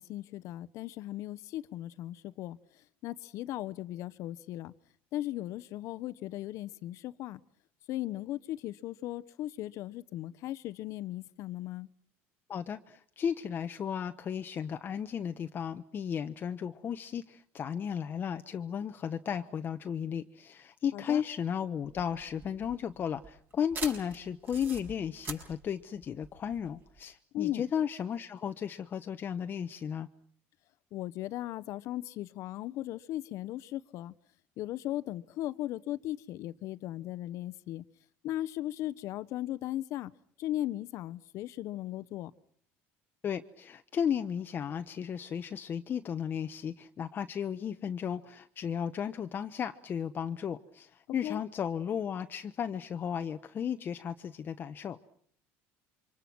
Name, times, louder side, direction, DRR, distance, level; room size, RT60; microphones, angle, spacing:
voice 1, 0.0-2.6 3.0-4.7 5.1-7.4 7.9-11.9 20.9-21.2 27.3-27.6 30.9-34.1 34.6-37.8 38.2-40.1 40.4-42.3 51.2-51.4, left 14 dB, 60° left, 1.0 m, -37 dB
voice 2, 12.5-30.1 43.2-55.0, left 8 dB, 35° left, 1.0 m, -34 dB
sound 1, 21.8-27.0, right 4 dB, 35° right, 6.6 m, -44 dB
28.5 x 25.5 x 6.2 m
cardioid pair, 120°, 6 cm